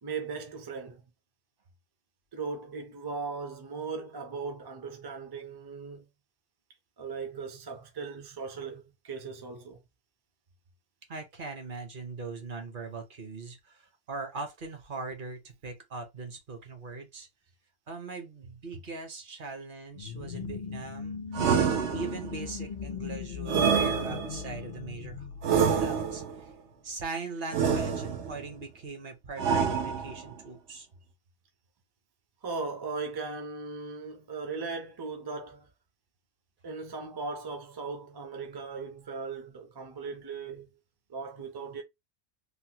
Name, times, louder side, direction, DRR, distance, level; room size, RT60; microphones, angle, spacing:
voice 1, 0.0-1.0 2.3-6.1 7.0-9.8 32.4-35.7 36.6-40.7 41.1-41.8, right 4 dB, 30° right, 0.4 m, -38 dB
voice 2, 11.1-17.3 17.9-21.2 21.6-26.2 26.8-30.9, right 4 dB, 55° right, 0.9 m, -40 dB
sound 1, 19.9-26.4, left 6 dB, 55° left, 0.5 m, -39 dB
sound 2, 21.3-22.4 23.5-24.5 25.4-26.4 27.5-28.4 29.4-30.3, right 6 dB, 85° right, 1.0 m, -27 dB
3.2 x 2.1 x 2.8 m
omnidirectional pair, 1.1 m